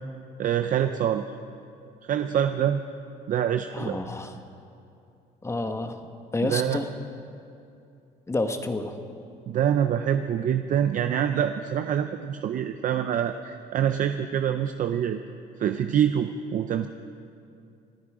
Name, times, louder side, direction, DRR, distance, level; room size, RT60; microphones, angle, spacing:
voice 1, 0.4-1.2 2.0-2.8 3.3-4.0 6.4-6.8 9.5-15.2 15.6-16.9, right 9 dB, 50° right, 8 dB, 0.6 m, -25 dB
voice 2, 3.7-4.3 5.4-6.0 6.3-6.9 8.3-8.9, left 2 dB, 15° left, 7 dB, 1.2 m, -29 dB
27.5 x 10.0 x 4.9 m, 2.6 s
cardioid pair, 110°, 17 cm